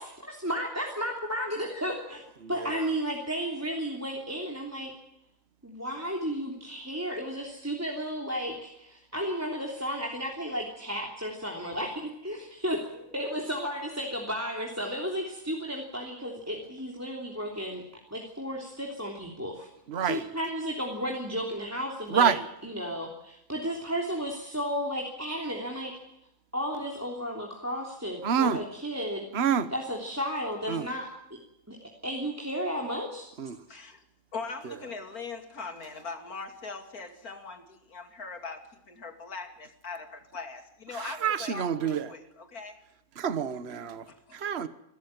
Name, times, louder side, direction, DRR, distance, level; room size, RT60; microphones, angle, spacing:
voice 1, 0.0-2.2 2.5-4.9 5.6-17.8 18.1-19.7 20.0-22.3 22.6-25.9 26.5-29.3 29.7-31.1 31.7-33.3, equal, 10° right, 0 dB, 3.2 m, -33 dB
voice 2, 2.4-2.9 19.9-20.3 22.1-22.4 28.2-28.6 29.3-29.7 30.7-30.9 33.4-33.6 41.0-42.1 43.2-44.0 44.3-44.7, right 8 dB, 45° right, 13 dB, 1.4 m, -27 dB
voice 3, 33.7-34.0 34.3-42.8 44.1-44.4, left 4 dB, 75° left, 6 dB, 3.1 m, -41 dB
26.5 x 14.0 x 9.1 m, 0.83 s
omnidirectional pair, 1.6 m